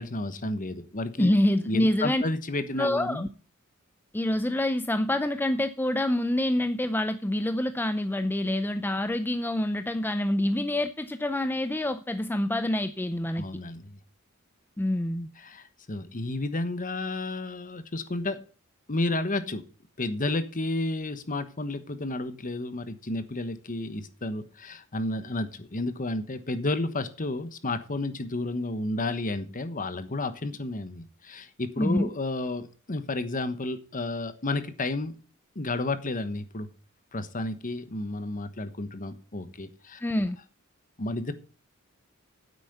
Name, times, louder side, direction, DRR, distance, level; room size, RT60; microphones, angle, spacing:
voice 1, 0.0-1.3 1.6-3.3 13.4-14.0 15.4-18.4 18.9-19.6 20.0-35.2 35.5-36.7 37.1-40.0 41.0-41.3, left 2 dB, 40° left, 12 dB, 1.2 m, -31 dB
voice 2, 1.2-2.2 2.8-3.3 4.1-13.5 14.8-15.3 31.8-32.1 40.0-40.4, left 1 dB, 10° left, 10 dB, 0.5 m, -26 dB
9.5 x 8.4 x 6.7 m, 0.39 s
head